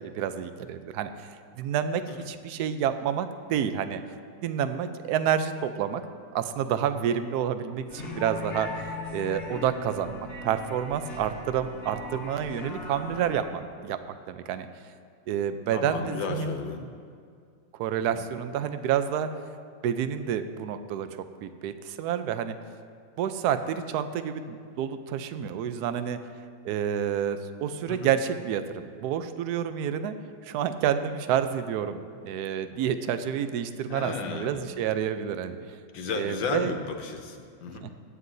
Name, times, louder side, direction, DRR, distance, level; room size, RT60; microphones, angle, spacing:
voice 1, 0.0-4.0 4.4-6.0 6.3-8.7 9.1-14.0 14.3-14.7 15.3-16.5 17.7-19.3 19.8-21.1 21.4-22.6 23.2-26.2 26.6-30.1 30.4-35.8 36.2-36.7, right 9 dB, 70° right, 10 dB, 1.0 m, -29 dB
sound 1, 7.9-13.4, left 2 dB, 40° left, 1.4 m, -39 dB
voice 2, 15.7-16.9 27.9-28.1 33.9-34.8 35.9-37.9, left 4 dB, 70° left, 4 dB, 1.6 m, -34 dB
17.0 x 11.0 x 2.7 m, 2.3 s
omnidirectional pair, 2.2 m